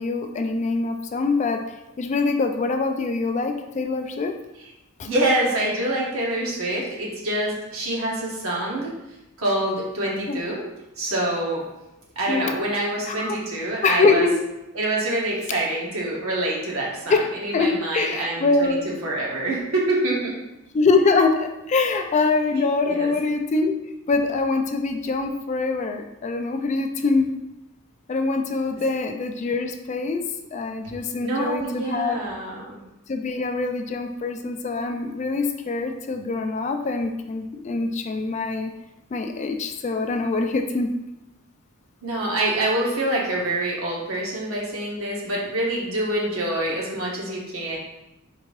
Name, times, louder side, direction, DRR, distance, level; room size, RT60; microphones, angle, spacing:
voice 1, 0.0-4.4 5.0-5.1 10.3-10.4 12.3-12.5 13.1-13.4 13.8-14.4 17.1-17.3 17.5-18.9 20.7-23.8 24.1-27.3 28.1-30.2 30.5-32.2 33.1-38.7 39.1-40.9, left 3 dB, 35° left, 6 dB, 0.3 m, -24 dB
voice 2, 5.0-8.9 9.4-10.6 11.0-11.6 12.1-14.3 14.7-18.7 19.0-20.3 22.9-23.1 31.2-32.8 42.0-47.8, right 1 dB, 75° right, -4 dB, 1.3 m, -26 dB
3.7 x 2.7 x 4.6 m, 0.96 s
head